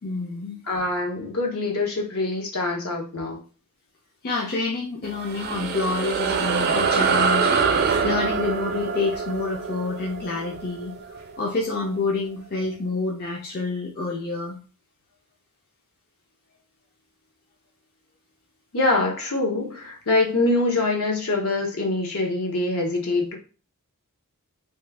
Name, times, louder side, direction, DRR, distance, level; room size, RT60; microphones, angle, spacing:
voice 1, 0.0-0.6 4.2-7.5 8.0-14.6, left 3 dB, 45° left, -2 dB, 0.6 m, -28 dB
voice 2, 0.6-3.4 18.7-23.4, left 2 dB, 70° left, 0 dB, 0.9 m, -24 dB
sound 1, 5.0-11.9, right 5 dB, 45° right, 0.4 m, -25 dB
3.1 x 2.3 x 3.3 m, 0.36 s
head